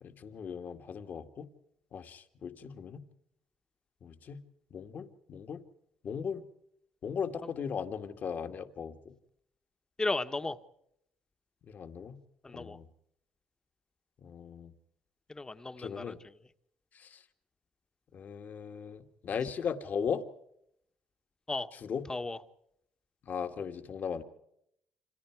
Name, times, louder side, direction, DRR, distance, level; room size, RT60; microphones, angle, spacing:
voice 1, 0.0-1.5 1.9-3.0 4.0-4.4 4.7-5.6 6.0-6.4 7.0-9.1 11.6-12.2 12.5-12.9 14.2-14.7 15.8-16.2 17.0-17.2 18.1-20.2 21.7-22.0 23.2-24.2, left 7 dB, 55° left, 8 dB, 2.1 m, -37 dB
voice 2, 10.0-10.6 12.4-12.8 15.3-16.1 21.5-21.7 22.1-22.4, left 3 dB, 20° left, 10 dB, 1.4 m, -34 dB
29.5 x 26.0 x 4.8 m, 0.75 s
cardioid pair, 95°, 4 cm